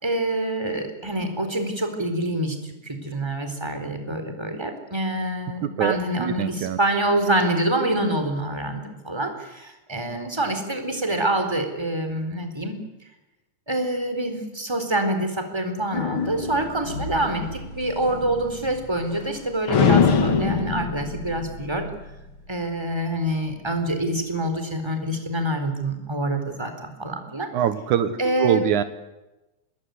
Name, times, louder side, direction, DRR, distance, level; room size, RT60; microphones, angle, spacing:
voice 1, 0.0-12.8 13.7-21.9 22.5-27.5 28.2-28.7, right 1 dB, 10° right, 6 dB, 4.1 m, -26 dB
voice 2, 5.6-6.8 27.5-28.8, right 10 dB, 80° right, 12 dB, 2.6 m, -24 dB
sound 1, 15.9-19.4 19.7-22.4, left 6 dB, 45° left, 2.3 m, -25 dB
27.0 x 20.5 x 9.7 m, 1.0 s
omnidirectional pair, 3.5 m